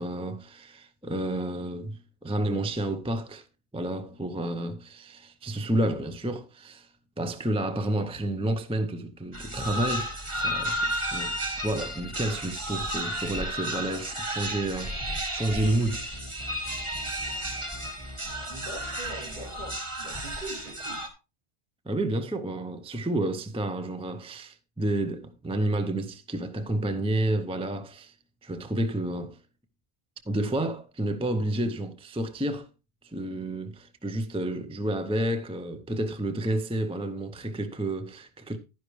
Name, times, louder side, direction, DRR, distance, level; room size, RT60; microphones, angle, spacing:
voice 1, 0.0-3.5 3.7-16.0 21.9-28.2 28.4-29.4 30.3-32.7 33.0-38.6, right 1 dB, 5° right, 0.5 m, -30 dB
sound 1, 9.3-21.1, equal, 30° right, 1.9 m, -33 dB
voice 2, 18.5-21.0, right 1 dB, 50° right, 2.8 m, -42 dB
11.0 x 10.5 x 3.1 m
omnidirectional pair, 1.1 m